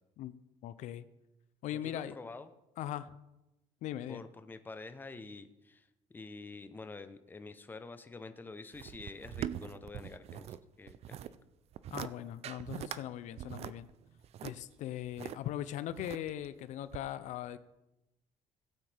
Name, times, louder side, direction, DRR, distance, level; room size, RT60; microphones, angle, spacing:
voice 1, 0.6-1.1 1.6-2.2 2.8-3.1 3.8-4.2 11.9-13.9 14.4-17.6, left 12 dB, 65° left, 14 dB, 0.5 m, -40 dB
voice 2, 1.8-2.5 4.1-5.9 6.1-11.2, left 3 dB, 15° left, 10 dB, 0.7 m, -47 dB
sound 1, 8.7-10.6 10.9-11.3 11.7-12.1 12.4-13.0 13.4-15.4 15.9-16.5 16.9-17.0, right 11 dB, 50° right, 0.4 m, -42 dB
16.5 x 8.7 x 3.4 m, 0.93 s
cardioid pair, 120°, 13 cm